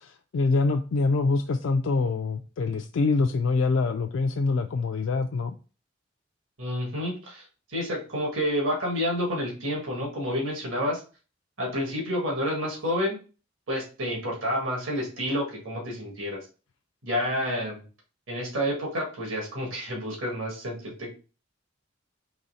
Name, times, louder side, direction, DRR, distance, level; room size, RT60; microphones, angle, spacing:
voice 1, 0.0-5.5, left 3 dB, 65° left, 0.3 m, -25 dB
voice 2, 6.6-11.0 11.6-13.2 13.7-16.5 17.0-17.8 18.3-21.2, equal, 80° right, 1.6 m, -29 dB
4.1 x 3.1 x 4.0 m
head